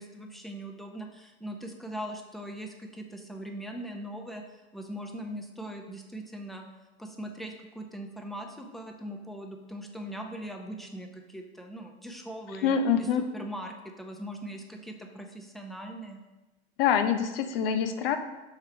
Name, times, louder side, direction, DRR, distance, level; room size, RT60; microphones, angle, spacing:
voice 1, 0.0-4.4 4.7-6.6 7.0-12.8 13.3-16.2, right 1 dB, ahead, 3 dB, 0.7 m, -40 dB
voice 2, 12.6-13.2 16.8-18.2, left 7 dB, 60° left, 8 dB, 0.7 m, -25 dB
6.7 x 4.5 x 3.3 m, 1.1 s
figure-of-eight pair, 80°, 32 cm